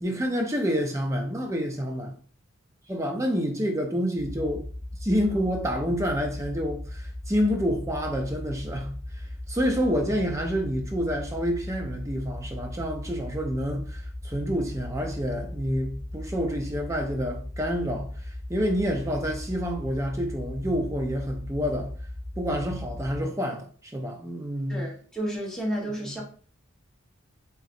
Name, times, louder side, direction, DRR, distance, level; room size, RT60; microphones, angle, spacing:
voice 1, 0.0-2.2 2.9-4.7 5.0-18.1 18.5-21.9 22.4-24.8 26.1-26.2, equal, 15° right, 0.5 m, -28 dB
sound 1, 4.2-23.2, left 1 dB, 25° left, 1.2 m, -37 dB
voice 2, 24.7-26.2, right 1 dB, 5° left, 1.0 m, -31 dB
3.8 x 3.0 x 2.6 m
head